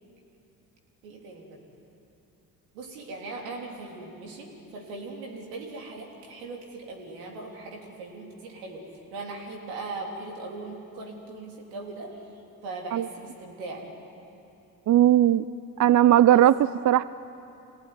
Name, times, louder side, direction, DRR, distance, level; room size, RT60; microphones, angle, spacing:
voice 1, 1.0-1.6 2.7-12.2 12.6-14.0 16.3-16.4, right 3 dB, 85° right, 0 dB, 3.6 m, -39 dB
voice 2, 14.9-15.4 15.8-16.6 16.8-17.0, right 12 dB, 45° right, 17 dB, 0.6 m, -18 dB
25.5 x 18.5 x 9.7 m, 2.7 s
hypercardioid pair, 50°, 42 cm